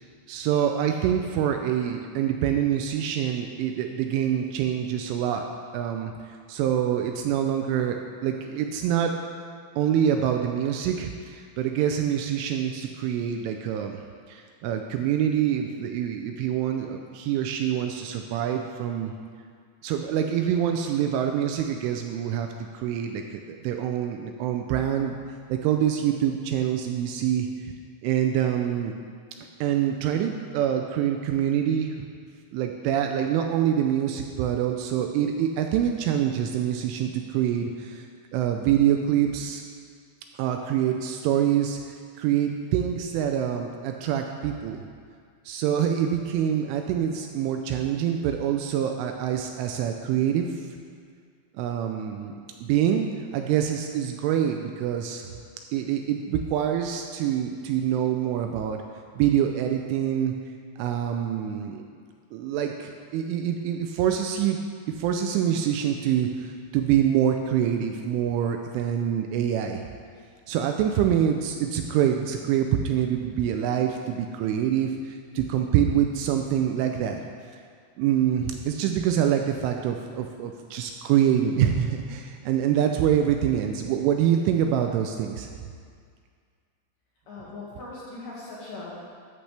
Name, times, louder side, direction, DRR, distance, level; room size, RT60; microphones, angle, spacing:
voice 1, 0.3-5.4 5.7-6.1 6.5-9.1 9.8-14.0 14.3-19.1 19.8-22.5 22.7-25.2 25.5-27.7 28.0-28.9 29.6-32.1 32.5-38.1 38.3-39.6 40.4-44.8 45.5-50.6 51.6-55.3 55.7-58.8 59.2-60.3 60.8-61.9 62.3-64.6 65.0-69.8 70.5-77.2 78.0-85.5, right 9 dB, 80° right, 4 dB, 2.9 m, -25 dB
voice 2, 87.3-89.1, left 2 dB, 55° left, -7 dB, 2.8 m, -39 dB
13.5 x 12.5 x 3.4 m, 2.1 s
omnidirectional pair, 5.9 m